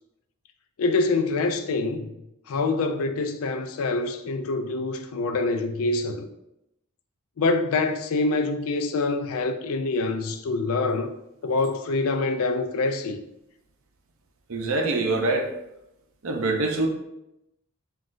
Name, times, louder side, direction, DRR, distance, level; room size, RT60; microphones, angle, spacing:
voice 1, 0.8-2.1 2.5-6.3 7.4-11.1 11.4-13.2, left 3 dB, 75° left, 0.4 m, -25 dB
voice 2, 14.5-15.5 16.2-16.9, right 2 dB, 65° right, 0.6 m, -24 dB
5.9 x 2.4 x 2.5 m
head